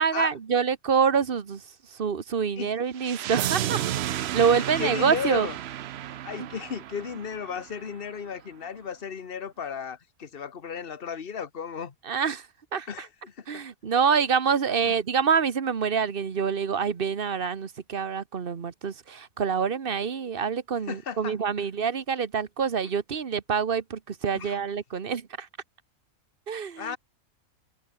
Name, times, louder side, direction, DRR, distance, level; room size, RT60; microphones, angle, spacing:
voice 1, 0.0-1.6 1.9-5.5 6.4-6.5 12.0-12.5 12.7-13.1 13.5-25.5 26.5-27.0, right 6 dB, 45° right, 1.2 m, -26 dB
sound 1, 3.0-7.9, right 12 dB, 60° right, 0.7 m, -32 dB
voice 2, 4.4-5.6 6.0-11.9 12.9-13.6 14.8-15.0 20.9-21.3 24.3-24.6 26.8-27.0, left 7 dB, 45° left, 1.4 m, -35 dB
omnidirectional pair, 1.4 m